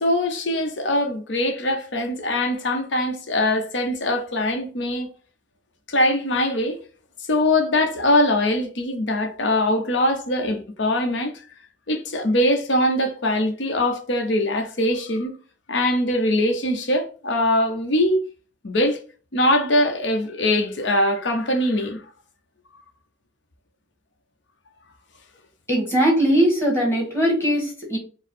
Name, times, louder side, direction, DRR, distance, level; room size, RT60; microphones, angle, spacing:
voice 1, 0.0-5.1 5.9-6.8 7.3-11.3 11.9-15.3 15.7-18.2 18.6-19.0 19.3-22.0, left 1 dB, 65° left, 0.8 m, -22 dB
voice 2, 25.7-28.0, equal, 15° left, 1.4 m, -20 dB
4.6 x 2.0 x 4.2 m
head